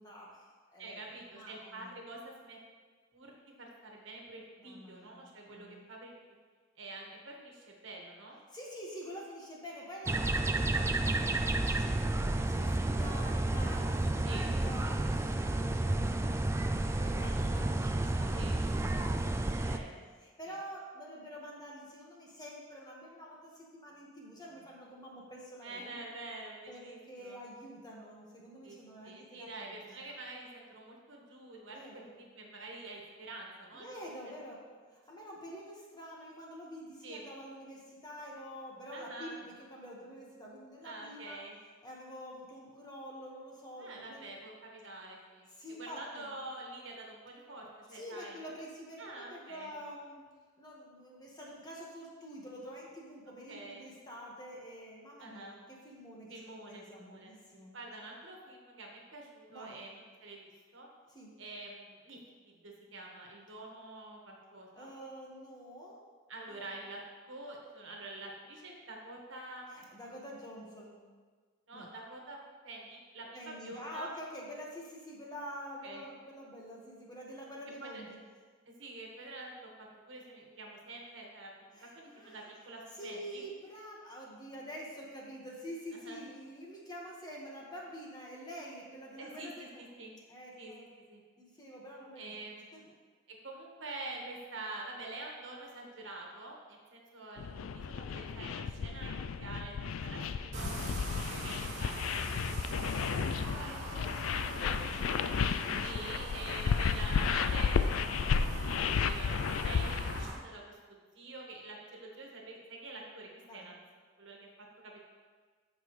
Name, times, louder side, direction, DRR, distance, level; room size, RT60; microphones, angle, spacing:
voice 1, 0.0-2.0 4.6-5.8 8.5-19.9 20.2-26.1 26.7-29.7 31.7-32.1 33.7-34.6 34.9-41.4 41.8-44.3 45.5-46.3 47.9-50.2 50.6-56.4 56.7-57.7 59.5-59.8 61.1-61.3 64.7-66.0 66.5-66.7 69.7-71.0 71.7-71.9 73.3-78.2 81.7-82.5 82.9-89.8 90.3-90.8 91.4-92.3 92.7-92.8 100.1-100.3 103.1-106.7 113.5-113.7, equal, 20° left, -3 dB, 1.5 m, -47 dB
voice 2, 0.8-2.6 3.1-6.2 6.8-8.4 14.2-14.5 18.3-18.6 19.6-20.0 20.4-20.5 25.6-27.4 28.6-28.8 29.0-33.9 34.2-34.3 37.0-37.3 38.9-39.4 40.8-41.6 43.8-45.5 45.8-48.4 49.0-49.7 53.5-53.8 55.2-55.6 56.3-57.3 57.7-60.9 61.4-62.2 62.4-64.9 66.3-67.0 67.3-69.7 71.7-74.1 75.8-76.0 77.8-78.0 78.6-83.4 85.9-86.2 89.2-89.7 89.9-90.1 90.6-91.2 92.2-92.9 93.3-99.7 100.0-100.7 101.1-104.2 105.8-113.8 114.2-115.0, right 2 dB, 65° right, -1 dB, 1.6 m, -47 dB
sound 1, 10.1-19.8, right 2 dB, 15° right, 0.3 m, -31 dB
sound 2, 97.4-110.2, left 6 dB, 85° left, 0.4 m, -33 dB
sound 3, 100.5-110.3, right 1 dB, 40° right, 1.9 m, -42 dB
13.5 x 5.3 x 3.2 m, 1.5 s
head